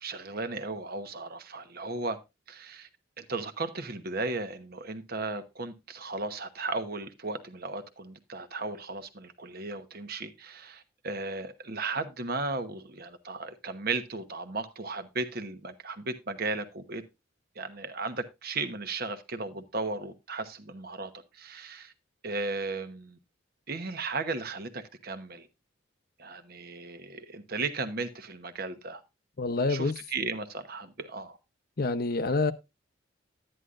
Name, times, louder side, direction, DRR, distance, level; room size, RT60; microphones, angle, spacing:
voice 1, 0.0-2.2 2.5-2.9 3.2-17.0 17.6-21.9 22.2-23.2 23.7-25.5 26.2-29.0 29.7-31.4, right 3 dB, 50° right, 1.0 m, -35 dB
voice 2, 29.4-30.0 31.8-32.5, left 3 dB, 50° left, 0.8 m, -27 dB
11.0 x 10.0 x 2.5 m
head